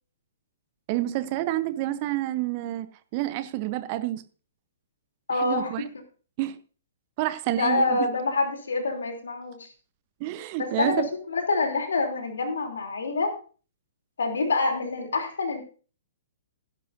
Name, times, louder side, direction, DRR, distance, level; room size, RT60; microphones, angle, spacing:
voice 1, 0.9-2.9 3.1-4.2 5.4-5.8 6.4-6.6 7.2-8.1 10.2-11.1, right 15 dB, 35° right, 0.8 m, -28 dB
voice 2, 5.3-5.7 7.6-9.7 10.6-13.3 14.2-15.6, left 3 dB, 65° left, 3.2 m, -26 dB
16.0 x 11.5 x 2.7 m
figure-of-eight pair, 115°, 0 cm